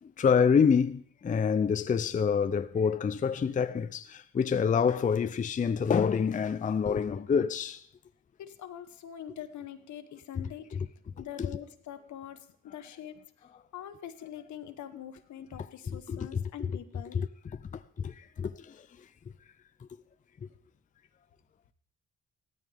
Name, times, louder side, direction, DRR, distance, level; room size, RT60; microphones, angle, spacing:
voice 1, 0.0-7.8 11.4-11.6 15.9-16.8 17.1-17.3 17.7-19.1, left 6 dB, 25° left, 0.5 m, -27 dB
voice 2, 8.4-10.7 11.2-13.1 13.7-17.2, left 10 dB, 70° left, 1.2 m, -44 dB
16.0 x 13.0 x 3.5 m
cardioid pair, 90°, 30 cm